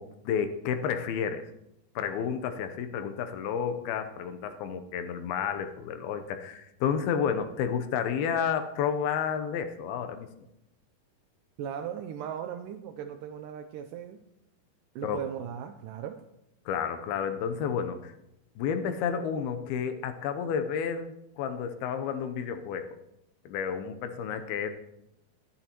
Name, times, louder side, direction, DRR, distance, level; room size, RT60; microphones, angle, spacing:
voice 1, 0.0-1.4 2.0-10.3 15.0-15.2 16.7-18.1 18.6-23.0 23.5-24.7, left 7 dB, 80° left, 8 dB, 2.7 m, -31 dB
voice 2, 11.6-14.2 15.0-16.2, right 9 dB, 85° right, 6 dB, 1.9 m, -38 dB
18.5 x 11.0 x 3.0 m, 0.83 s
omnidirectional pair, 4.4 m